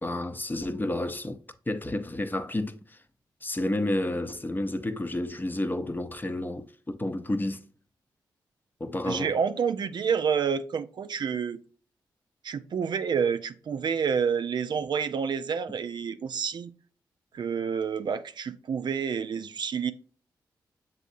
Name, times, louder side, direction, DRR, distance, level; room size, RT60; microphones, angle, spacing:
voice 1, 0.0-3.0 3.4-7.7 8.8-9.4, left 1 dB, 20° left, 0.6 m, -31 dB
voice 2, 9.0-11.6 12.4-16.7 17.3-19.9, right 6 dB, 60° right, 0.4 m, -28 dB
7.0 x 2.7 x 2.5 m
supercardioid pair, 45°, 9 cm